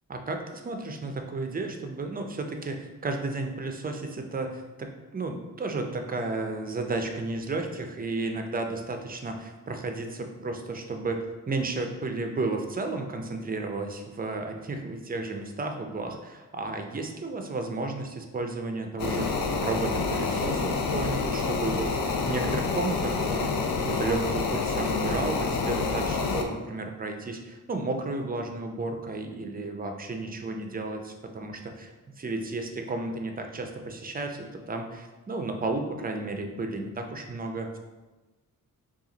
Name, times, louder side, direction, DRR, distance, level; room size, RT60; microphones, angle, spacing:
voice 1, 0.1-19.3 19.6-37.8, right 3 dB, 25° right, 4 dB, 0.4 m, -33 dB
sound 1, 19.0-26.4, left 4 dB, 90° left, 0.6 m, -28 dB
5.7 x 2.4 x 3.9 m, 1.2 s
wide cardioid pair, 155°, 33 cm